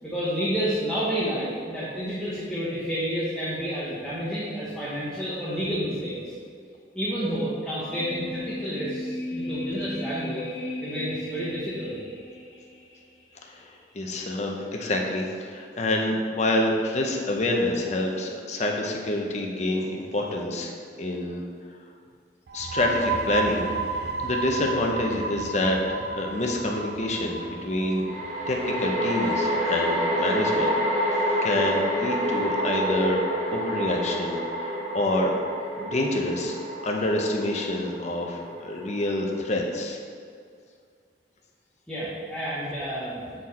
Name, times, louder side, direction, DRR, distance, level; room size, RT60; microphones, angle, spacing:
voice 1, 0.0-6.3 6.9-10.5 10.8-12.0 41.9-43.3, equal, 5° left, -11 dB, 1.2 m, -30 dB
sound 1, 7.8-13.0 13.3-13.4, left 1 dB, 75° left, 1.6 m, -36 dB
voice 2, 13.9-20.7 21.0-21.4 22.5-23.6 23.9-28.1 28.5-33.2 33.5-35.3 35.8-40.0, left 1 dB, 40° left, 1 dB, 0.7 m, -27 dB
sound 2, 22.5-29.9, right 4 dB, 65° right, 0.4 m, -33 dB
sound 3, 25.1-25.2 28.0-39.4, equal, 45° right, 1.3 m, -28 dB
7.7 x 4.4 x 4.2 m, 2.3 s
head